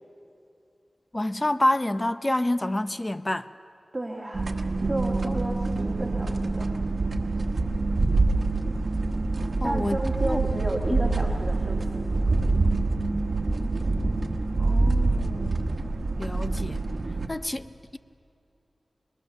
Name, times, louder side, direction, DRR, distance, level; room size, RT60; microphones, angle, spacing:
voice 1, 1.1-3.5 5.2-5.4 5.7-5.8 9.6-10.4 10.9-11.1 14.6-15.7 16.2-16.8 17.3-18.0, left 1 dB, 25° left, 0.6 m, -28 dB
voice 2, 3.9-4.5 4.8-6.8 9.6-12.1, right 1 dB, 20° right, 2.1 m, -32 dB
sound 1, 4.3-17.3, right 3 dB, 60° right, 1.2 m, -26 dB
22.5 x 21.0 x 6.8 m
wide cardioid pair, 70°, 0 cm